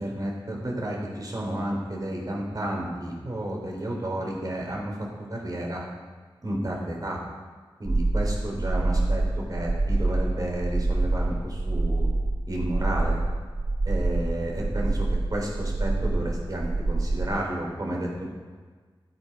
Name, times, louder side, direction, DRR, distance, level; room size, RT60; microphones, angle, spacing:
voice 1, 0.0-5.9 6.4-7.2 7.8-12.1 12.5-13.2 13.8-18.3, right 1 dB, 45° right, -1 dB, 3.4 m, -31 dB
sound 1, 7.9-17.3, right 2 dB, 25° right, 0.5 m, -26 dB
13.5 x 7.8 x 5.3 m, 1.5 s
wide cardioid pair, 90°, 9 cm